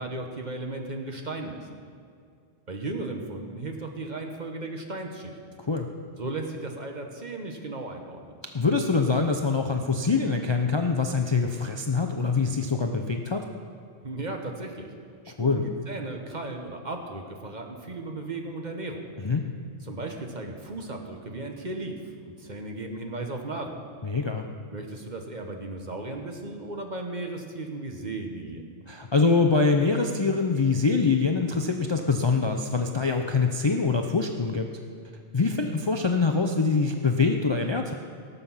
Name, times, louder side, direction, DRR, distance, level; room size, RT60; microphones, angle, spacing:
voice 1, 0.0-1.6 2.7-5.4 6.2-8.2 14.0-14.9 15.2-19.1 19.8-22.0 22.2-23.8 24.7-28.6, right 2 dB, 40° right, 3 dB, 1.2 m, -35 dB
voice 2, 8.5-13.5 15.4-15.6 19.2-19.4 24.0-24.4 28.9-34.7 35.3-37.9, left 4 dB, 35° left, 3 dB, 0.5 m, -24 dB
18.5 x 7.0 x 5.6 m, 2.3 s
omnidirectional pair, 1.2 m